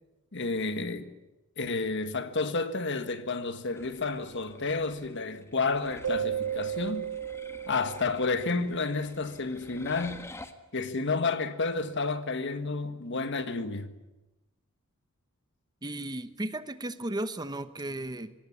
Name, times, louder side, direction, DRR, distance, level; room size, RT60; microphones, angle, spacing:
voice 1, 0.3-1.1 1.6-7.0 7.7-10.2 10.7-13.9, left 3 dB, 55° left, 1.7 m, -30 dB
sound 1, 3.7-10.5, left 2 dB, 15° left, 1.6 m, -49 dB
Keyboard (musical), 6.0-8.8, right 9 dB, 75° right, 0.8 m, -34 dB
voice 2, 15.8-18.3, right 1 dB, 20° right, 1.0 m, -35 dB
25.0 x 18.5 x 9.9 m
head